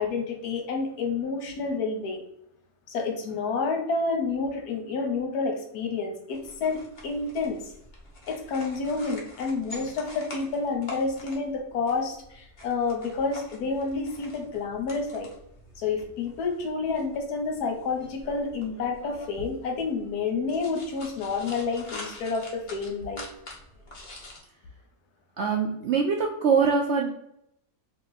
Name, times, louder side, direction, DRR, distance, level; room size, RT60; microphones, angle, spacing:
voice 1, 0.0-2.2 2.9-7.7 8.3-15.3 15.8-23.3, left 4 dB, 80° left, 3 dB, 1.3 m, -29 dB
sound 1, 6.3-24.4, left 1 dB, 35° left, 0.9 m, -46 dB
voice 2, 25.4-27.1, right 5 dB, 70° right, 0 dB, 0.7 m, -23 dB
2.9 x 2.9 x 3.9 m, 0.77 s
omnidirectional pair, 1.6 m